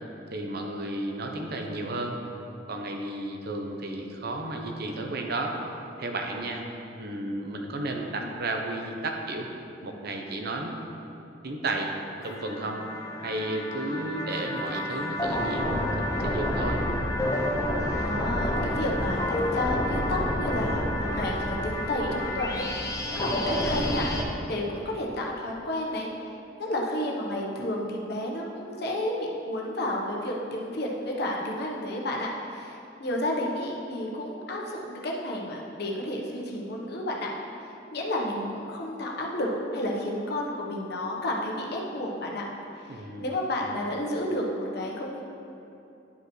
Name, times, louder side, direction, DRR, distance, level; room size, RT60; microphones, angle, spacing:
voice 1, 0.3-2.2 2.7-5.6 6.0-6.6 7.0-9.5 9.8-10.7 11.4-11.9 12.2-12.9 13.2-16.8 42.9-43.3, right 2 dB, 55° right, 2 dB, 0.7 m, -33 dB
sound 1, 12.2-24.2, left 1 dB, 20° left, 0.7 m, -29 dB
voice 2, 17.9-22.7 23.1-26.1 26.6-37.3 37.9-42.4 42.9-45.2, left 1 dB, 60° left, -2 dB, 1.0 m, -31 dB
10.5 x 5.2 x 3.1 m, 2.9 s
head